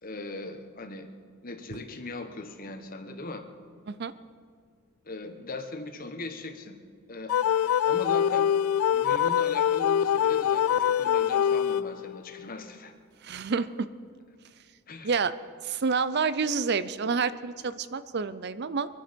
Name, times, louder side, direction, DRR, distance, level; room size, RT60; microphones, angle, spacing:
voice 1, 0.0-1.1 1.4-3.4 5.0-6.8 7.1-7.3 7.8-8.5 8.9-12.9 14.9-15.1, left 2 dB, 40° left, 6 dB, 1.3 m, -39 dB
sound 1, 7.3-12.2, left 9 dB, 90° left, 0.3 m, -24 dB
voice 2, 13.2-13.9 15.0-15.3 15.6-18.9, right 5 dB, 50° right, 15 dB, 0.6 m, -28 dB
24.5 x 9.5 x 5.3 m, 2.1 s
head